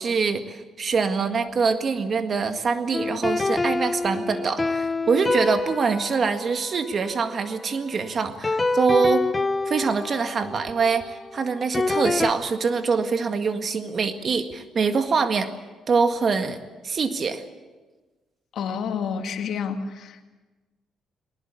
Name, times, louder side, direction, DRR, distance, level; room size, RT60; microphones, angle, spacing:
voice 1, 0.0-9.3 9.7-15.5 15.9-16.6 16.8-17.4, right 5 dB, 45° right, 8 dB, 1.8 m, -24 dB
sound 1, 2.9-7.8 8.4-12.3, left 3 dB, 20° left, 0.9 m, -27 dB
voice 2, 18.5-20.2, left 6 dB, 70° left, 6 dB, 1.9 m, -29 dB
20.0 x 19.0 x 8.4 m, 1.3 s
cardioid pair, 90°, 0 cm